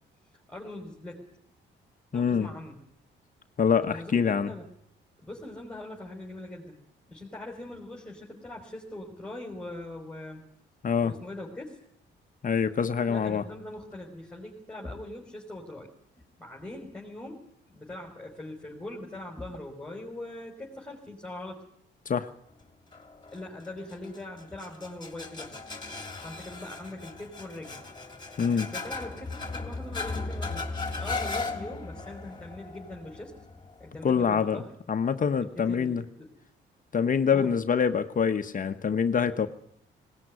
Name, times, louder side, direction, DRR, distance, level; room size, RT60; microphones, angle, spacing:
voice 1, 0.5-1.2 2.1-2.8 3.9-4.7 5.2-6.7 7.1-10.4 11.0-11.8 13.1-15.9 16.4-21.6 23.3-25.6 26.2-27.8 28.4-30.7 31.0-33.3 33.8-34.7 35.4-36.3 37.3-37.5, left 1 dB, 5° left, -2 dB, 5.0 m, -41 dB
voice 2, 2.1-2.5 3.6-4.5 10.8-11.1 12.4-13.4 22.0-22.3 28.4-28.7 34.0-34.6 34.9-36.0 36.9-39.5, left 6 dB, 40° left, 9 dB, 1.2 m, -25 dB
sound 1, 22.9-34.2, left 3 dB, 20° left, 3.0 m, -37 dB
19.0 x 18.5 x 9.8 m, 0.69 s
cardioid pair, 90°, 20 cm